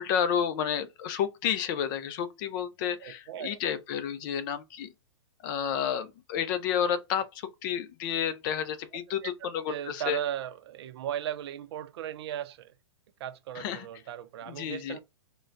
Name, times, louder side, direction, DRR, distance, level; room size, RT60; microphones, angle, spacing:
voice 1, 0.0-4.9 5.4-7.2 7.6-10.2 13.6-13.9 14.5-15.0, left 8 dB, 40° left, 0.5 m, -30 dB
voice 2, 3.0-3.6 9.2-9.3 9.7-12.7 13.2-15.0, right 10 dB, 55° right, 0.5 m, -36 dB
3.7 x 2.2 x 2.5 m
hypercardioid pair, 125°, 16 cm